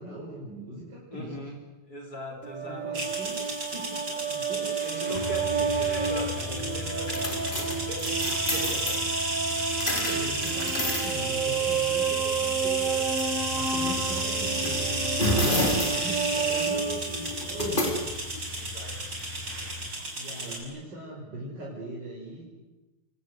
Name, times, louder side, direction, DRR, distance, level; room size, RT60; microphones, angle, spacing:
voice 1, 0.0-1.3 2.6-4.7 5.1-5.2 9.8-18.3 20.1-22.4, right 1 dB, 55° right, -4 dB, 6.6 m, -40 dB
voice 2, 1.1-1.6 1.9-3.1 4.3-4.5 4.8-9.1 18.6-19.2 20.3-20.6, equal, 45° left, 0 dB, 5.3 m, -40 dB
sound 1, 2.4-17.9, right 6 dB, 35° right, 2.5 m, -31 dB
sound 2, 2.9-20.6, right 2 dB, 80° right, 6.4 m, -32 dB
sound 3, 5.2-19.9, left 1 dB, 20° left, 4.2 m, -33 dB
28.5 x 24.0 x 8.1 m, 1.1 s
omnidirectional pair, 2.3 m